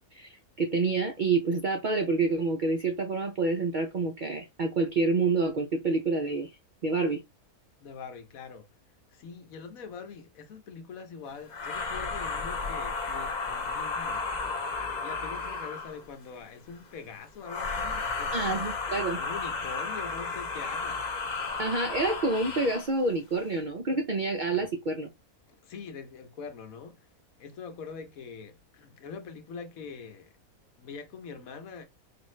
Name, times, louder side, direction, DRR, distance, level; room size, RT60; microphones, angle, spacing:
voice 1, 0.1-6.5 6.8-7.2 18.3-19.2 21.6-25.1, right 3 dB, 65° right, 0.4 m, -28 dB
voice 2, 7.8-8.7 9.1-14.3 15.0-18.8 19.1-21.1 25.5-27.1 27.4-30.3 30.8-31.8, left 5 dB, 70° left, 1.2 m, -43 dB
sound 1, 11.5-16.1 17.4-22.9, left 4 dB, 45° left, 0.6 m, -33 dB
4.9 x 2.5 x 3.1 m
omnidirectional pair, 1.5 m